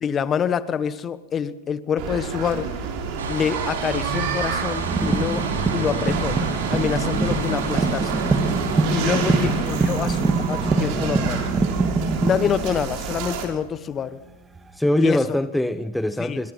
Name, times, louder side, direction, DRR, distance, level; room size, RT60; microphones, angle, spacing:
voice 1, 0.0-2.7 3.3-5.5 5.7-6.4 6.7-8.3 8.9-11.4 12.2-14.2 15.0-15.2 16.2-16.4, left 8 dB, 25° left, 1.3 m, -26 dB
sound 1, 2.0-13.5, right 5 dB, 50° right, 5.9 m, -28 dB
sound 2, 3.2-10.7, right 5 dB, 80° right, 5.1 m, -34 dB
sound 3, 4.9-13.7 14.6-14.7, right 3 dB, 15° right, 2.1 m, -24 dB
voice 2, 9.3-9.6 14.7-16.5, left 1 dB, 5° left, 0.8 m, -23 dB
25.5 x 22.0 x 5.7 m
hypercardioid pair, 100°, 0 cm